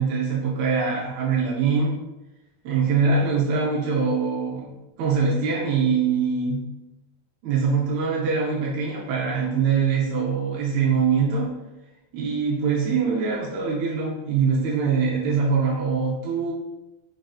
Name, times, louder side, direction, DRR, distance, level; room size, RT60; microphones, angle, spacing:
voice 1, 0.0-2.0 2.6-6.7 7.4-11.5 12.1-16.5, right 5 dB, 80° right, -4 dB, 2.4 m, -23 dB
6.1 x 2.5 x 2.3 m, 1.0 s
omnidirectional pair, 4.4 m